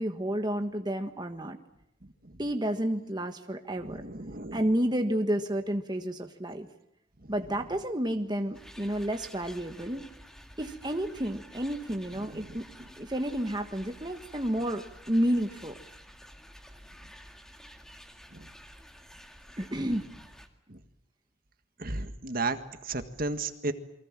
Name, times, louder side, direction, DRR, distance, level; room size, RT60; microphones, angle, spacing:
voice 1, 0.0-1.6 2.4-4.0 4.5-6.7 7.3-10.1 10.6-12.7 13.0-15.8 19.6-20.0, right 1 dB, 20° right, 6 dB, 1.4 m, -30 dB
voice 2, 3.8-4.7 7.2-7.3 12.1-12.6 18.3-18.5 20.7-20.8 21.8-23.7, right 3 dB, 45° right, 9 dB, 1.6 m, -35 dB
sound 1, 8.5-20.5, equal, ahead, 2.0 m, -51 dB
28.5 x 23.5 x 7.5 m, 0.79 s
head